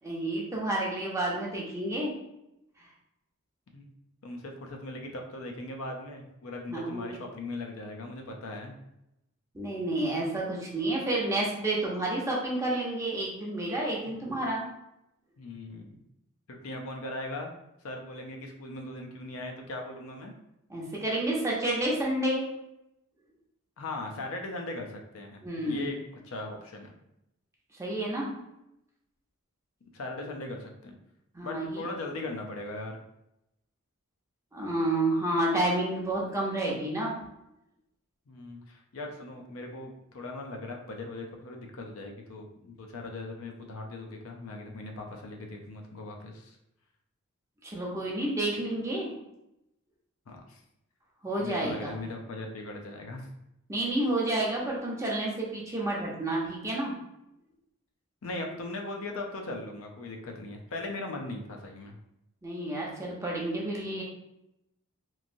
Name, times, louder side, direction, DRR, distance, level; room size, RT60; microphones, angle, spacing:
voice 1, 0.0-2.1 6.7-7.2 9.5-14.7 20.7-22.4 25.4-25.9 27.8-28.3 31.3-31.8 34.5-37.1 47.6-49.1 51.2-51.9 53.7-56.9 62.4-64.0, right 1 dB, 15° right, -4 dB, 0.6 m, -30 dB
voice 2, 4.2-8.8 14.0-14.2 15.4-16.0 16.6-17.5 17.8-20.3 23.8-26.0 26.2-26.9 29.9-30.9 31.4-33.0 38.3-46.6 50.3-50.6 51.4-53.3 58.2-62.0, left 2 dB, 70° left, 2 dB, 0.5 m, -39 dB
3.0 x 2.6 x 2.6 m, 0.85 s
head